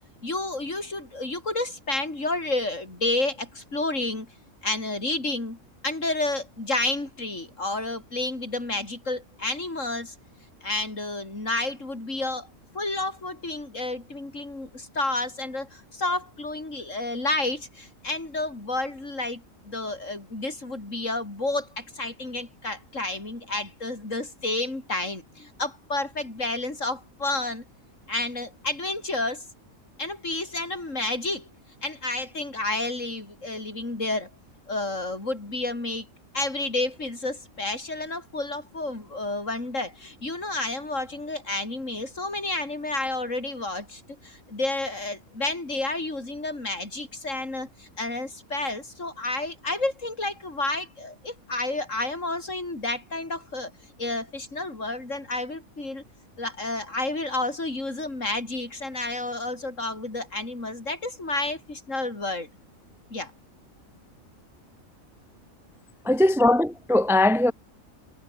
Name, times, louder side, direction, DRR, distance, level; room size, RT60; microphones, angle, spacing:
voice 1, 0.2-4.3 4.6-5.6 5.8-10.2 10.6-12.5 12.7-27.7 28.1-29.5 30.0-31.5 31.8-34.3 34.7-36.1 36.3-53.7 54.0-56.0 56.4-62.5 63.1-63.3, left 2 dB, 65° left, 5.4 m, -30 dB
voice 2, 66.0-67.5, left 1 dB, ahead, 0.8 m, -20 dB
omnidirectional pair, 1.4 m